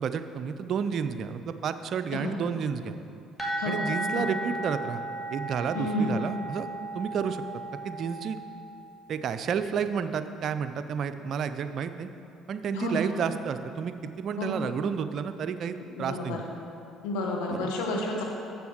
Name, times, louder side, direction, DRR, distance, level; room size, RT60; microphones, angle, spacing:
voice 1, 0.0-3.0 3.6-5.0 5.3-6.7 6.9-7.4 7.8-8.4 9.1-12.1 12.5-16.4 17.5-17.7, right 7 dB, 55° right, 10 dB, 0.5 m, -31 dB
sound 1, 3.4-9.0, right 1 dB, 5° left, 2.1 m, -35 dB
voice 2, 5.7-6.2 12.7-13.1 14.4-14.6 15.9-16.4 17.0-18.2, left 1 dB, 80° left, 0 dB, 1.3 m, -30 dB
7.1 x 7.0 x 6.3 m, 2.7 s
hypercardioid pair, 65°, 0 cm